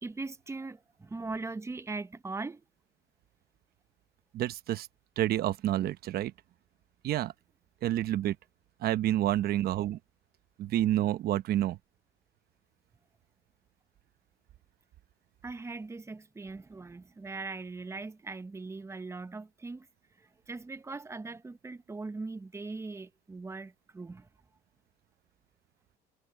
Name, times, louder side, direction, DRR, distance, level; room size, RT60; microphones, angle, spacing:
voice 1, 0.0-2.6 15.4-19.9 20.2-24.3, right 3 dB, 15° right, 0.9 m, -40 dB
voice 2, 4.3-4.9 5.2-6.3 7.0-7.3 7.8-8.4 8.8-10.0 10.6-11.8, right 13 dB, 65° right, 1.0 m, -28 dB
cardioid pair, 110°, 17 cm